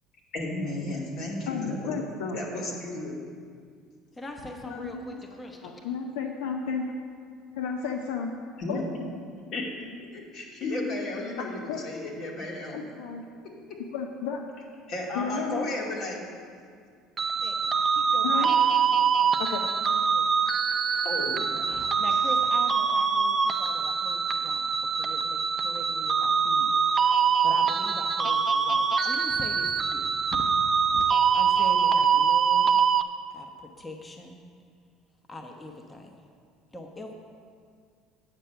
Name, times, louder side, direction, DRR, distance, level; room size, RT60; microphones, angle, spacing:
voice 1, 0.3-1.9 2.3-3.1 8.6-8.8 9.5-12.8 14.9-16.2 21.0-21.7, left 2 dB, 60° left, -2 dB, 2.3 m, -33 dB
voice 2, 1.5-2.4 4.7-5.2 5.6-6.9 7.5-8.3 8.7-8.8 11.7-11.8 12.7-13.2 13.9-14.5 15.1-15.6 18.2-18.5 19.4-19.6, left 6 dB, 85° left, 3 dB, 0.7 m, -32 dB
voice 3, 4.1-5.8 17.4-18.7 18.9-19.3 19.6-19.7 20.1-20.3 21.7-31.0 31.3-32.8 33.3-34.4 35.3-36.2 36.7-37.1, left 1 dB, 20° left, 3 dB, 0.9 m, -42 dB
sound 1, 17.2-33.0, right 6 dB, 35° right, 0.4 m, -24 dB
9.1 x 6.7 x 5.7 m, 2.1 s
supercardioid pair, 95°, 0 cm